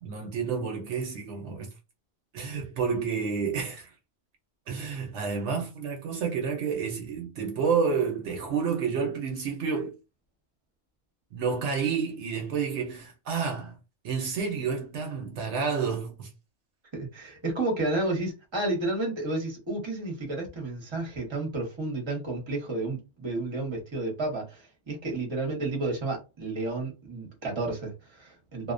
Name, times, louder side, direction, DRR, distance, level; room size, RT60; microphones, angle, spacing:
voice 1, 0.0-1.7 2.3-3.9 4.7-10.0 11.3-13.8 14.0-16.3, right 6 dB, 70° right, 0.9 m, -30 dB
voice 2, 16.9-28.7, right 2 dB, 25° right, 0.8 m, -31 dB
2.5 x 2.1 x 2.4 m
omnidirectional pair, 1.3 m